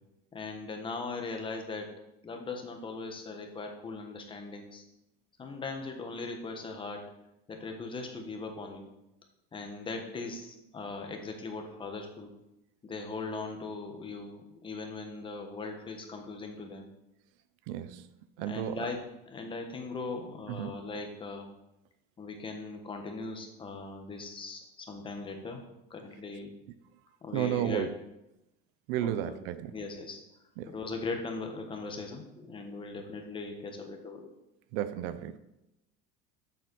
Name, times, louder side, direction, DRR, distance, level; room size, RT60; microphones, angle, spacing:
voice 1, 0.3-1.9 2.2-4.8 5.4-7.1 7.5-8.9 9.5-12.3 12.8-16.9 18.4-21.5 22.2-25.6 25.9-26.5 27.2-27.9 29.0-29.4 29.7-30.2 30.6-34.3, left 3 dB, 15° left, 4 dB, 1.3 m, -39 dB
voice 2, 17.7-18.1 18.4-18.9 20.5-20.7 27.3-27.9 28.9-29.7 30.6-30.7 34.7-35.4, right 11 dB, 70° right, 13 dB, 0.7 m, -32 dB
7.9 x 7.3 x 6.2 m, 0.89 s
cardioid pair, 165°, 29 cm